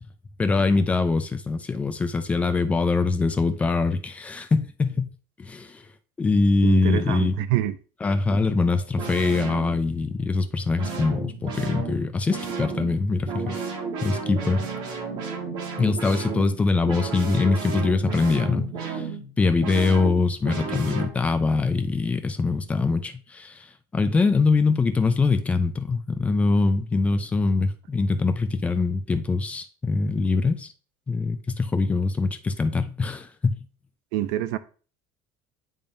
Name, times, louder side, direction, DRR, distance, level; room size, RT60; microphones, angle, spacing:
voice 1, 0.4-5.1 5.4-5.8 6.2-7.4 8.0-13.4 14.0-14.6 15.8-19.0 19.4-23.7 23.9-30.7 31.1-33.6, left 3 dB, 15° left, 0.5 m, -23 dB
voice 2, 6.6-7.8 34.1-34.6, right 14 dB, 85° right, 0.5 m, -26 dB
sound 1, 9.0-10.1 10.8-21.1, right 4 dB, 50° right, 1.6 m, -33 dB
10.5 x 3.6 x 2.6 m
cardioid pair, 160°, 9 cm